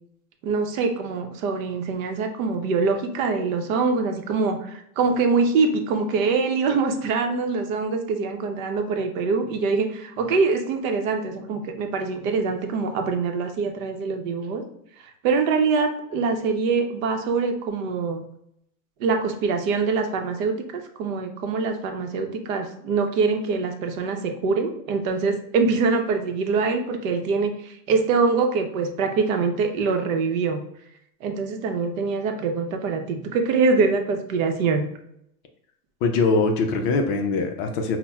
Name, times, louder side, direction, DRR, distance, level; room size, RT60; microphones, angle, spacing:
voice 1, 0.4-14.6 15.2-18.2 19.0-30.6 31.2-34.9, right 4 dB, 60° right, 5 dB, 0.7 m, -24 dB
voice 2, 36.0-38.0, left 3 dB, 40° left, 4 dB, 0.4 m, -22 dB
5.4 x 2.1 x 2.2 m, 0.73 s
supercardioid pair, 120°, 44 cm